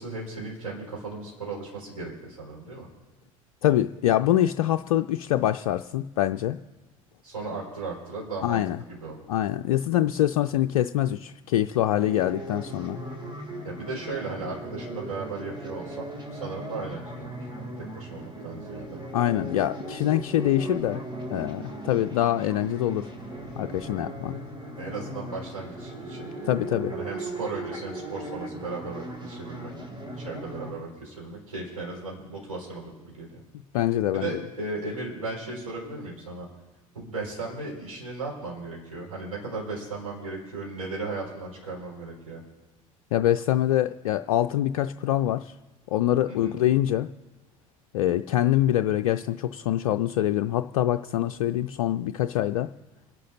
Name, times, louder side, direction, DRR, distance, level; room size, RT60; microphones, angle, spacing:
voice 1, 0.0-2.9 7.2-8.6 8.9-9.2 13.6-17.3 17.9-19.0 24.8-26.3 26.9-29.7 30.2-33.4 34.1-36.5 36.9-42.4 46.3-46.6, right 3 dB, 85° right, -5 dB, 5.2 m, -36 dB
voice 2, 3.6-6.6 8.4-8.8 9.3-13.0 19.1-21.0 21.3-23.1 23.6-24.4 26.4-26.9 33.7-34.3 43.1-45.6 45.9-47.1 47.9-52.7, left 13 dB, 65° left, 9 dB, 0.4 m, -24 dB
sound 1, 12.0-30.7, right 1 dB, 25° right, 3.0 m, -38 dB
28.0 x 11.5 x 2.8 m, 1.2 s
figure-of-eight pair, 65°, 18 cm